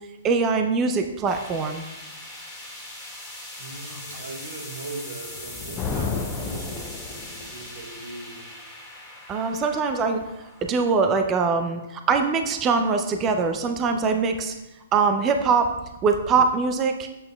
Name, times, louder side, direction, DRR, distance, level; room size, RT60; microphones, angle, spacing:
voice 1, 0.2-1.8 3.8-4.0 9.3-10.3 10.6-14.6 14.9-15.7 16.0-17.1, right 4 dB, 25° right, 6 dB, 0.5 m, -23 dB
sound 1, 1.3-12.4, left 1 dB, 5° left, 1.9 m, -41 dB
voice 2, 3.6-8.4, right 2 dB, 75° right, 1 dB, 1.5 m, -39 dB
Thunder, 5.3-7.7, left 5 dB, 25° left, 0.6 m, -32 dB
8.5 x 7.6 x 2.3 m, 1.0 s
hypercardioid pair, 125°, 0 cm